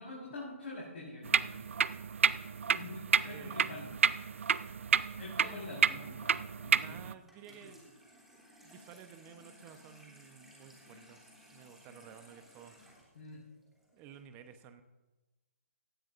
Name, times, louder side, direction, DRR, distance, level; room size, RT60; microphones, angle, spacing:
voice 1, 0.0-1.7 2.7-3.8 5.2-7.0 7.6-7.7 13.1-13.4, left 2 dB, 55° left, -5 dB, 4.8 m, -46 dB
sound 1, 1.2-7.1, right 6 dB, 65° right, 0.4 m, -30 dB
voice 2, 3.2-3.9 6.8-8.0 8.6-11.2 11.5-12.8 13.9-14.8, right 8 dB, 25° right, 9 dB, 0.9 m, -53 dB
Water tap faucet / Sink (filling or washing), 7.2-14.2, equal, 5° right, 3.0 m, -59 dB
17.5 x 13.0 x 2.6 m, 1.1 s
figure-of-eight pair, 135°, 7 cm